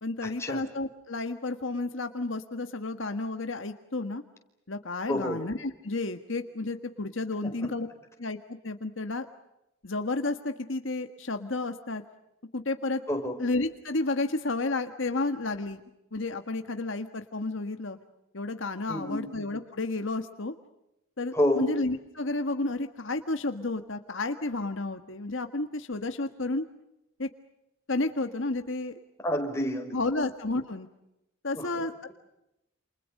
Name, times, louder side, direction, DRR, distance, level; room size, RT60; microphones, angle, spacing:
voice 1, 0.0-4.2 4.7-7.9 8.2-8.4 8.6-9.3 9.8-12.0 12.5-13.0 13.4-15.8 16.1-18.0 18.3-20.5 21.2-26.6 27.2-27.3 27.9-28.9 29.9-30.9 31.4-32.1, left 2 dB, 65° left, 7 dB, 1.6 m, -31 dB
voice 2, 5.1-5.4 7.4-7.5 13.1-13.3 18.9-19.2 21.3-21.6 29.2-29.9 31.6-32.1, left 1 dB, 15° left, 3 dB, 5.0 m, -29 dB
29.0 x 28.5 x 6.6 m, 0.89 s
head